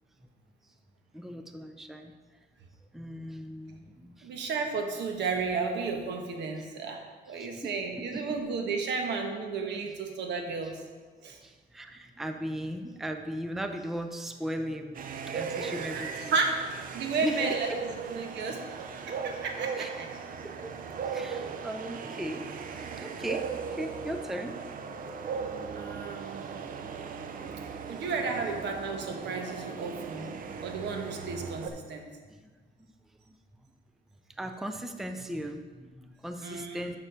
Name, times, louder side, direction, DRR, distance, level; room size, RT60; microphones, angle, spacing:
voice 1, 1.1-2.1 2.9-4.3 7.3-7.7 8.1-8.4 10.6-10.7 11.4-15.0 15.3-16.5 17.2-17.4 17.7-17.8 19.8-19.9 20.4-20.8 21.1-22.5 22.8-24.6 32.4-32.5 32.8-32.9 33.3-33.4 34.4-37.0, equal, ahead, 6 dB, 0.4 m, -37 dB
voice 2, 4.2-10.7 11.2-11.4 15.5-17.7 18.1-18.6 19.1-20.1 25.7-26.5 27.9-30.3 30.6-32.0 36.4-36.9, right 4 dB, 85° right, 3 dB, 1.2 m, -33 dB
sound 1, 14.9-31.7, right 6 dB, 50° right, 0.6 m, -38 dB
6.8 x 6.1 x 5.0 m, 1.4 s
cardioid pair, 140°, 18 cm